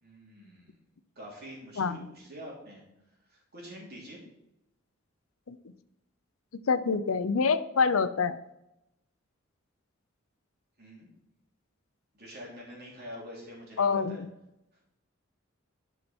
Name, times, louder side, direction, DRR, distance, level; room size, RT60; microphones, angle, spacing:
voice 1, 0.0-0.8 1.1-2.8 3.3-4.2 10.8-11.1 12.1-14.2, equal, 50° right, -3 dB, 3.4 m, -46 dB
voice 2, 6.7-8.4 13.8-14.3, left 5 dB, 80° left, 12 dB, 0.6 m, -26 dB
11.0 x 5.8 x 4.4 m, 0.85 s
head